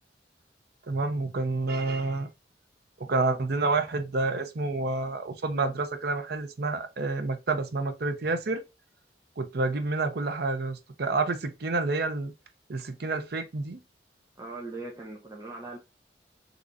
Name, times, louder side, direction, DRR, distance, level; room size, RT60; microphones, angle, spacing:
voice 1, 0.9-2.3 3.0-8.6 9.4-12.3 12.7-13.8, right 3 dB, 65° right, 0.6 m, -29 dB
voice 2, 14.4-15.8, right 2 dB, 20° right, 0.7 m, -40 dB
3.7 x 3.0 x 2.5 m
head